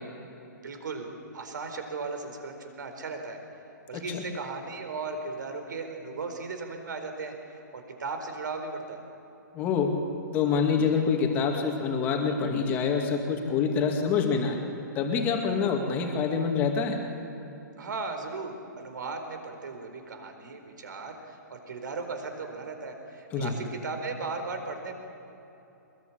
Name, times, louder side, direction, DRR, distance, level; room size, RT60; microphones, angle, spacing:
voice 1, 0.6-3.4 3.9-9.0 17.8-25.0, right 3 dB, 75° right, 6 dB, 4.5 m, -37 dB
voice 2, 3.9-4.3 9.5-9.9 10.3-14.6 14.9-17.0 23.3-23.5, left 5 dB, 20° left, 2 dB, 2.3 m, -26 dB
23.0 x 21.5 x 8.6 m, 3.0 s
hypercardioid pair, 165°, 10 cm